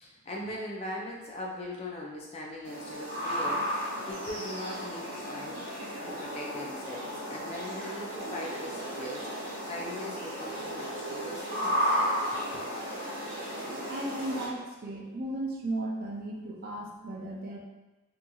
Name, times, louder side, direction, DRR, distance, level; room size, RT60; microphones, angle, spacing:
voice 1, 0.0-5.7 6.0-9.3 9.7-12.0 12.5-12.6, left 1 dB, 30° left, -3 dB, 0.4 m, -40 dB
sound 1, 2.6-14.5, equal, 60° right, 0.8 m, -34 dB
Wind instrument woodwind instrument, 2.7-7.6, left 1 dB, 50° left, 0.8 m, -47 dB
voice 2, 13.9-17.6, right 1 dB, 45° right, -1 dB, 0.4 m, -35 dB
2.9 x 2.5 x 2.3 m, 1.1 s
head